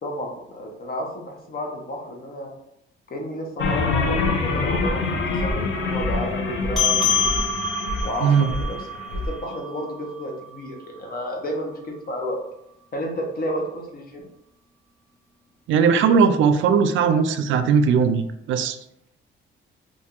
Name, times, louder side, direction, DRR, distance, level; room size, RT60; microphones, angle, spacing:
voice 1, 0.0-2.5 3.1-5.0 5.3-7.5 8.0-12.4 12.9-14.3, equal, 50° left, 0 dB, 1.0 m, -31 dB
sound 1, 3.6-9.3, left 3 dB, 80° left, 0.6 m, -25 dB
sound 2, 6.8-11.5, left 4 dB, ahead, 1.4 m, -27 dB
voice 2, 15.7-18.8, right 6 dB, 75° right, 9 dB, 0.4 m, -19 dB
2.7 x 2.6 x 3.7 m, 0.77 s
cardioid pair, 90°, 20 cm